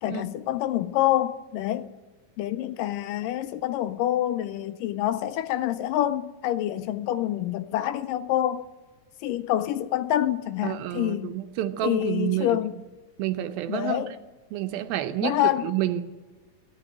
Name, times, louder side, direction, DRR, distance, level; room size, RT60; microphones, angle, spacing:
voice 1, 0.0-1.9 2.4-8.7 9.2-11.4 11.8-12.7 13.7-14.1 15.2-15.7, left 13 dB, 80° left, 2.1 m, -27 dB
voice 2, 10.6-12.6 13.2-14.1 14.5-16.0, right 13 dB, 90° right, 2.7 m, -29 dB
17.0 x 9.4 x 9.0 m
omnidirectional pair, 4.1 m